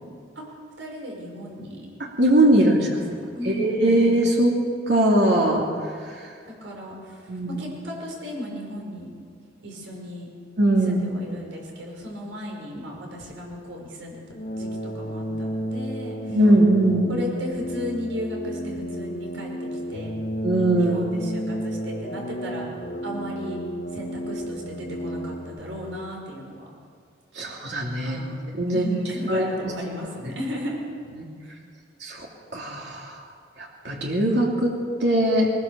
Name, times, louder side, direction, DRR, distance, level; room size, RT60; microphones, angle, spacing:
voice 1, 0.8-1.9 2.7-3.9 6.4-9.1 9.6-10.3 10.8-14.2 14.6-14.7 14.9-16.4 17.1-20.2 20.8-22.7 23.0-23.6 23.9-26.6 28.0-30.8, left 1 dB, 85° right, -1 dB, 5.8 m, -35 dB
voice 2, 2.0-3.0 3.4-4.6 4.9-5.7 7.3-7.5 10.6-11.0 16.3-17.1 20.4-21.0 27.3-28.2 28.6-28.8 29.3-29.7 31.2-31.3 32.0-32.3 32.5-33.2 33.6-35.5, right 1 dB, 65° right, -2 dB, 2.9 m, -21 dB
sound 1, 14.3-25.6, equal, 55° left, 1.7 m, -32 dB
21.0 x 20.5 x 7.0 m, 2.2 s
head